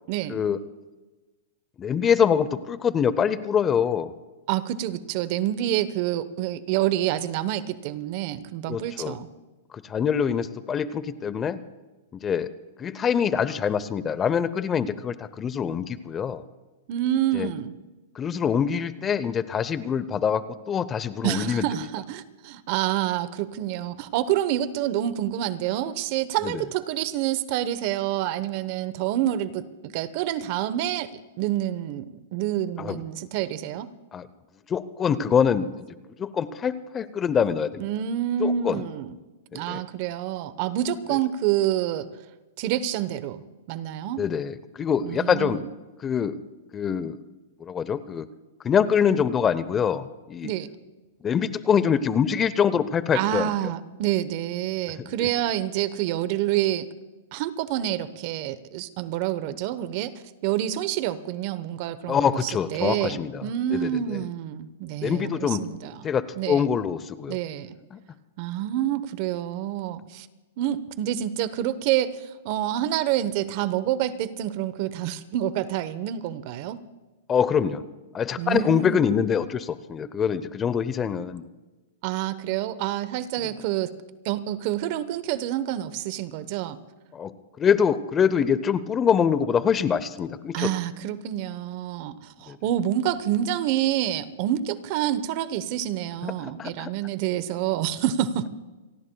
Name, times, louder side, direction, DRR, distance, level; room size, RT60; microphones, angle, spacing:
voice 1, 0.3-0.6 1.8-4.1 8.7-9.2 9.7-11.6 12.1-12.5 12.8-16.4 17.3-17.5 18.1-21.9 26.4-26.6 32.8-33.0 34.1-34.3 34.7-35.9 36.2-37.9 38.4-38.8 39.5-39.8 44.2-45.6 46.0-46.4 46.7-47.2 47.6-48.3 48.6-50.5 51.2-53.7 55.0-55.3 62.1-64.2 65.0-65.6 66.0-67.4 67.9-68.0 77.3-77.8 78.1-81.4 87.1-90.7 92.5-92.6 96.2-96.9, left 7 dB, 20° left, 15 dB, 0.7 m, -25 dB
voice 2, 4.5-9.3 16.9-17.7 21.2-33.9 37.8-39.1 39.5-42.1 42.6-44.2 45.0-45.7 50.4-50.7 53.1-56.9 57.3-60.1 60.4-66.1 66.4-66.6 67.3-67.8 68.4-70.3 70.6-76.8 78.4-79.0 82.0-83.9 84.2-86.8 90.5-98.5, right 12 dB, 45° right, 14 dB, 1.0 m, -27 dB
29.0 x 19.0 x 2.3 m, 1.2 s
hypercardioid pair, 140°, 0 cm